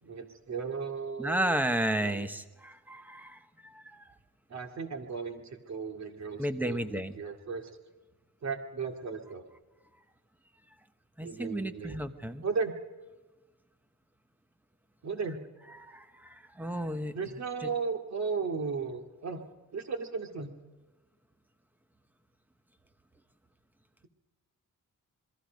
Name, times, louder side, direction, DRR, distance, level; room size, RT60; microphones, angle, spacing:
voice 1, 0.0-1.6 2.0-2.2 4.5-7.7 8.4-9.4 11.2-12.0 12.4-12.7 15.0-15.4 17.1-19.4 19.7-20.5, right 5 dB, 60° right, 4 dB, 2.3 m, -35 dB
voice 2, 1.2-3.4 6.4-7.1 11.2-12.4 15.8-16.0 16.6-17.1, right 1 dB, 5° right, 9 dB, 1.0 m, -32 dB
27.0 x 22.0 x 5.2 m, 1.2 s
wide cardioid pair, 170°, 31 cm